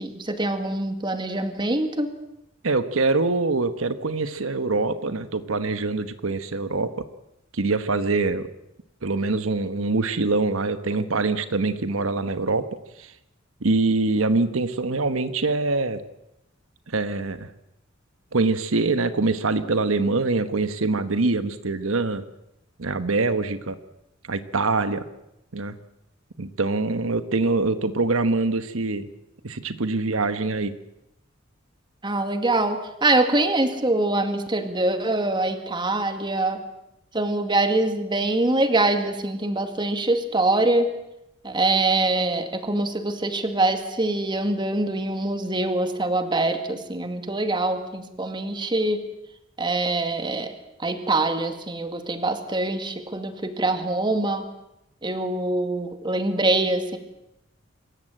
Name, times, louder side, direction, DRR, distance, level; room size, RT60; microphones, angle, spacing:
voice 1, 0.0-2.1 32.0-36.6 37.1-40.9 41.4-49.0 49.6-50.5 50.8-54.4 55.0-57.0, right 2 dB, 25° right, 7 dB, 2.1 m, -24 dB
voice 2, 2.6-6.9 7.5-8.5 9.0-12.7 13.0-13.1 13.6-16.0 16.9-17.5 18.3-22.2 22.8-23.8 24.3-25.0 25.5-25.7 26.4-29.1 29.4-30.7, right 3 dB, 85° right, 11 dB, 1.2 m, -24 dB
25.5 x 14.5 x 9.0 m, 0.87 s
head